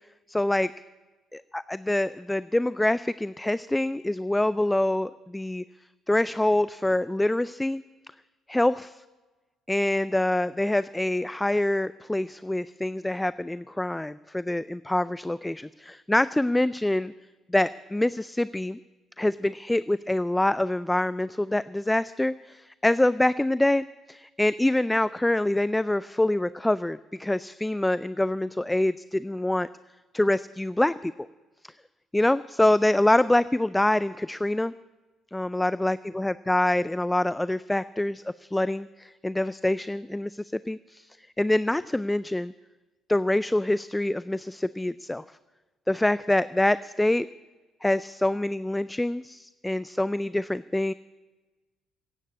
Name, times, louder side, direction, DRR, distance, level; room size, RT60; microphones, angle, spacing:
voice 1, 0.3-0.7 1.3-5.6 6.1-7.8 8.5-9.0 9.7-17.1 17.5-18.8 19.2-29.7 30.1-31.1 32.1-34.7 35.3-41.1 41.4-42.5 43.1-45.2 45.9-47.3 47.8-50.9, left 1 dB, 10° left, 17 dB, 0.4 m, -25 dB
15.0 x 9.2 x 8.7 m, 1.2 s
hypercardioid pair, 55°, 0 cm